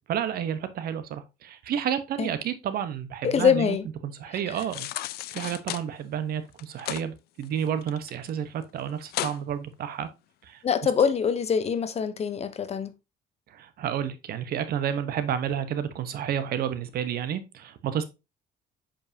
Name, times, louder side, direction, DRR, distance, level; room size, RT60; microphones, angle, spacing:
voice 1, 0.1-3.8 4.0-4.9 5.3-10.1 10.5-10.6 13.5-18.0, right 9 dB, 65° right, 1.0 m, -30 dB
voice 2, 3.2-3.9 4.3-4.4 10.6-12.9, left 7 dB, 40° left, 0.8 m, -24 dB
sound 1, 4.5-5.8 6.5-7.0 7.4-8.3 8.6-8.7 9.1-9.4 9.9-10.0, left 15 dB, 70° left, 0.4 m, -34 dB
7.0 x 5.2 x 2.7 m
cardioid pair, 110°, 17 cm